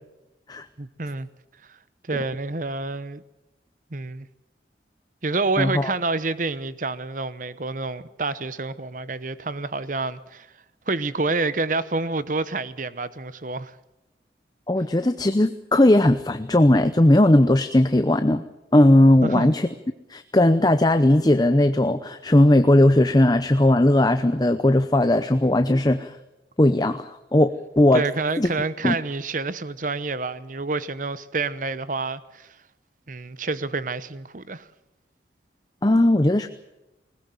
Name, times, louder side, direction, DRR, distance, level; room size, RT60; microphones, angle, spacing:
voice 1, 0.8-1.3 2.1-3.2 3.9-4.3 5.2-10.5 10.9-13.7 19.2-19.5 27.9-32.6 33.1-34.6, right 3 dB, 45° right, 0.9 m, -28 dB
voice 2, 5.6-5.9 14.7-18.4 18.7-19.7 20.1-26.1 26.6-28.0 28.4-28.5 28.8-29.0 35.8-36.5, left 1 dB, 20° left, 0.7 m, -18 dB
20.5 x 20.0 x 7.8 m
head